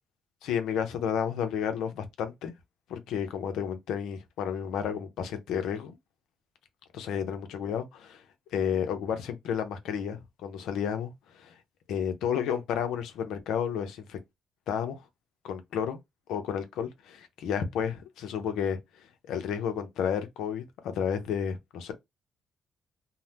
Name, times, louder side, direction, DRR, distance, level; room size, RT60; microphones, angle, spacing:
voice 1, 0.4-2.5 2.9-6.0 6.9-8.2 8.5-11.5 11.9-14.2 14.7-15.0 15.4-16.0 16.3-21.9, left 8 dB, 85° left, 0.6 m, -32 dB
2.7 x 2.1 x 3.3 m
cardioid pair, 90°, 0 cm